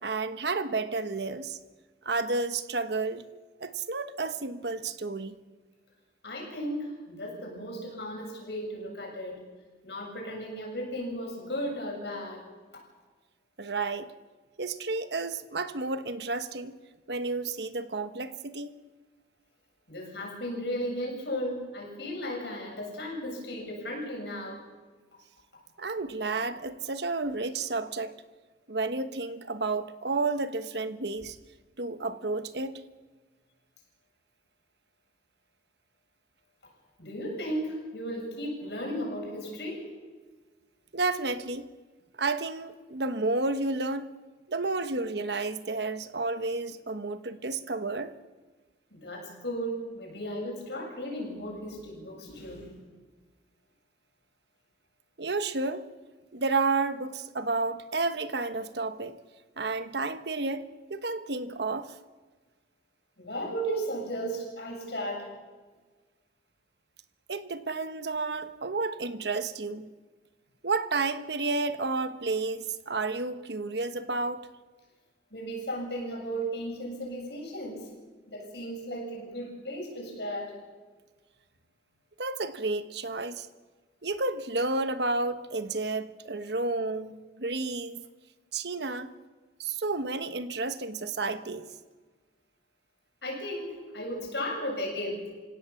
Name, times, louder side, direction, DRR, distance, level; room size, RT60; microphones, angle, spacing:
voice 1, 0.0-1.6 2.0-3.3 3.6-5.4 13.6-14.1 14.6-16.8 17.1-18.7 25.8-28.1 28.7-31.4 31.8-32.8 40.9-41.7 42.2-44.1 44.5-48.2 55.2-55.9 56.3-59.2 59.6-62.0 67.3-69.9 70.6-74.5 82.2-83.5 84.0-88.0 88.5-89.1 89.6-91.7, right 3 dB, 65° right, 1.2 m, -31 dB
voice 2, 6.2-9.5 9.8-12.4 12.7-12.8 19.9-24.6 25.5-25.6 36.6-36.7 37.0-39.9 48.9-52.8 63.2-65.3 75.3-77.9 78.3-80.5 93.2-95.2, equal, 70° left, 7.6 m, -35 dB
28.5 x 17.0 x 7.2 m
head